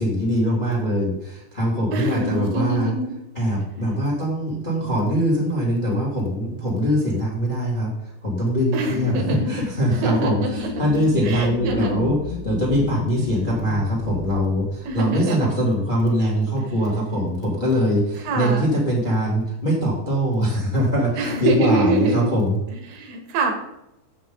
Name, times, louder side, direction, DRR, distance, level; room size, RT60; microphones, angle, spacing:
voice 1, 0.0-2.9 3.3-7.9 8.2-9.2 9.5-12.2 12.4-22.5, equal, 20° left, -2 dB, 1.3 m, -22 dB
voice 2, 1.9-3.1 8.7-9.5 10.0-10.7 11.2-12.0 14.9-15.5 16.6-16.7 18.3-18.7 21.1-22.3 22.7-23.6, right 2 dB, 85° right, 4 dB, 4.0 m, -25 dB
sound 1, 8.9-15.3, left 8 dB, 90° left, 2.9 m, -33 dB
8.5 x 7.7 x 3.8 m, 0.85 s
omnidirectional pair, 5.1 m